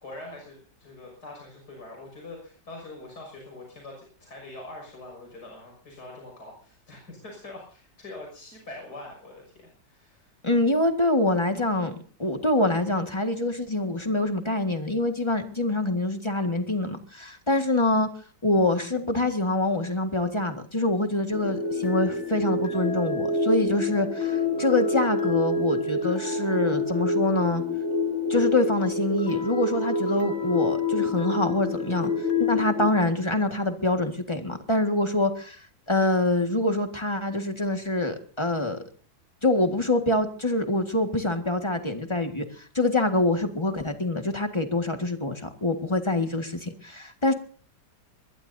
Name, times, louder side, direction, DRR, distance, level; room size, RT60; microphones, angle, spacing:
voice 1, 0.0-10.3, left 2 dB, 60° left, 0 dB, 6.9 m, -43 dB
voice 2, 10.4-18.1 18.4-27.6 28.3-38.8 39.4-47.3, left 2 dB, 15° left, 6 dB, 1.7 m, -25 dB
sound 1, 21.3-32.9, left 2 dB, 40° left, 1.7 m, -27 dB
23.0 x 22.0 x 2.7 m, 0.43 s
omnidirectional pair, 2.0 m